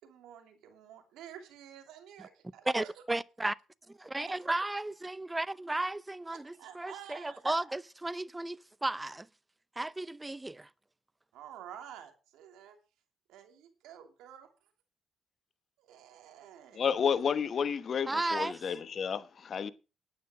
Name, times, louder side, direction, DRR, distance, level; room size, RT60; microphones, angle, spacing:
voice 1, 0.0-2.9 4.3-4.4 6.3-7.4 11.3-12.8 13.3-14.5 15.8-16.9, right 10 dB, 85° right, 2.8 m, -50 dB
voice 2, 2.7-3.6 3.9-9.3 9.8-10.7 18.1-18.5, right 2 dB, 15° right, 0.6 m, -34 dB
voice 3, 16.7-19.7, left 7 dB, 55° left, 1.1 m, -31 dB
11.5 x 9.4 x 4.9 m
supercardioid pair, 70°, 0 cm